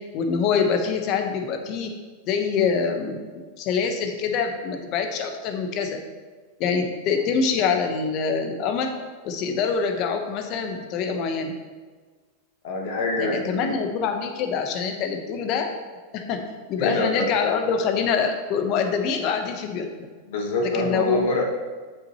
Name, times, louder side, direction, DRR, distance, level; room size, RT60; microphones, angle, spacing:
voice 1, 0.1-1.9 2.3-6.0 6.6-8.9 9.2-11.5 13.2-15.7 16.1-16.4 16.7-19.9 20.6-21.3, left 6 dB, 50° left, 5 dB, 1.0 m, -25 dB
voice 2, 12.6-13.8 16.8-17.3 20.3-21.4, left 2 dB, 70° left, 1 dB, 1.4 m, -26 dB
8.1 x 5.9 x 3.1 m, 1.4 s
hypercardioid pair, 115°, 0 cm